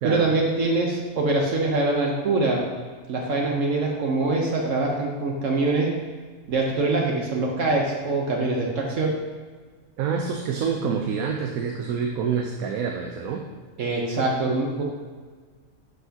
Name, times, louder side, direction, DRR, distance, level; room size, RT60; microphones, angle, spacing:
voice 1, 0.0-2.7 3.1-6.0 6.5-9.1 13.8-14.8, right 2 dB, 65° right, -1 dB, 1.2 m, -24 dB
voice 2, 10.0-13.4, right 6 dB, 85° right, 2 dB, 1.1 m, -27 dB
11.0 x 5.7 x 2.8 m, 1.5 s
omnidirectional pair, 1.4 m